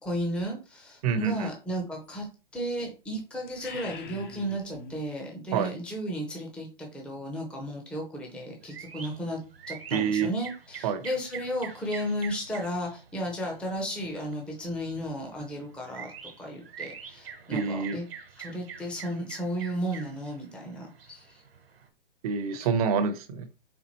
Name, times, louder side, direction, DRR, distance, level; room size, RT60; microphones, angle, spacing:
voice 1, 0.0-2.3 2.5-9.4 9.7-16.1 16.4-18.1 18.4-21.4 22.6-22.7, equal, 5° left, -1 dB, 0.7 m, -34 dB
voice 2, 1.0-1.5 5.5-5.7 9.9-10.3 10.8-11.0 17.5-18.0 22.2-23.5, right 6 dB, 40° right, 9 dB, 0.7 m, -27 dB
sound 1, 3.5-5.0, left 4 dB, 50° left, 1.1 m, -43 dB
sound 2, 8.6-21.9, right 7 dB, 75° right, 1.2 m, -46 dB
4.3 x 3.8 x 2.9 m, 0.33 s
hypercardioid pair, 140°, 30 cm